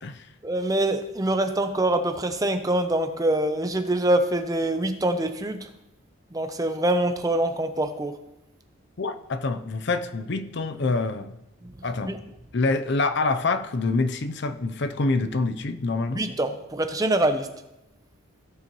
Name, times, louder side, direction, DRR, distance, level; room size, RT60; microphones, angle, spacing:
voice 1, 0.4-5.7 6.3-8.2 12.0-12.2 16.1-17.5, right 1 dB, 15° right, 8 dB, 0.6 m, -24 dB
voice 2, 9.0-11.4 11.8-12.2 12.5-16.3, left 3 dB, 55° left, 10 dB, 0.6 m, -26 dB
16.5 x 6.8 x 3.1 m, 0.91 s
head